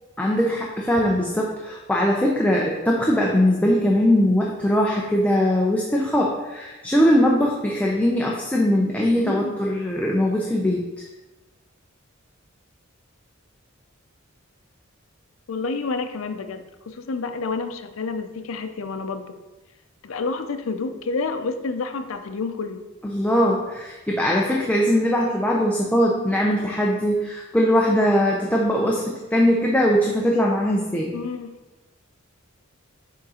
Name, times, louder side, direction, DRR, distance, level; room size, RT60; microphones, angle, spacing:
voice 1, 0.2-10.8 23.0-31.1, equal, 5° left, -2 dB, 0.5 m, -21 dB
voice 2, 9.2-9.6 15.5-19.4 20.0-22.8 31.1-31.5, left 4 dB, 85° left, 8 dB, 0.5 m, -29 dB
6.3 x 3.8 x 4.2 m, 1.1 s
head